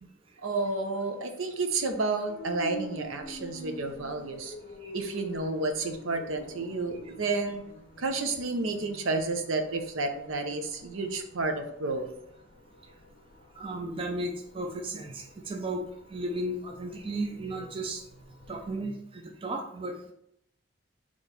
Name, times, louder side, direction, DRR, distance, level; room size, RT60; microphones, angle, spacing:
voice 1, 0.4-4.5 4.9-7.6 8.0-12.1, right 3 dB, 80° right, 6 dB, 0.6 m, -31 dB
air raid sirens, 2.3-18.8, equal, 40° left, 0.6 m, -48 dB
voice 2, 13.6-15.8 16.1-18.0 18.5-20.1, right 1 dB, 25° right, 2 dB, 0.4 m, -34 dB
4.3 x 3.0 x 4.0 m, 0.74 s
head